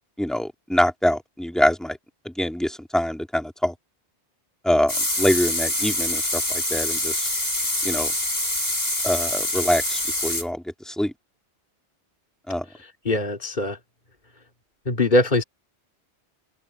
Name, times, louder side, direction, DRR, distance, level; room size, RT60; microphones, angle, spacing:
voice 1, 0.2-2.0 2.3-3.7 4.6-7.3 7.8-8.1 9.0-11.1 12.5-12.7, left 1 dB, ahead, 1.8 m, -24 dB
sound 1, 4.9-10.4, left 1 dB, 65° left, 7.1 m, -25 dB
voice 2, 13.0-13.8 14.9-15.4, left 2 dB, 45° left, 2.8 m, -21 dB
open air
omnidirectional pair, 1.1 m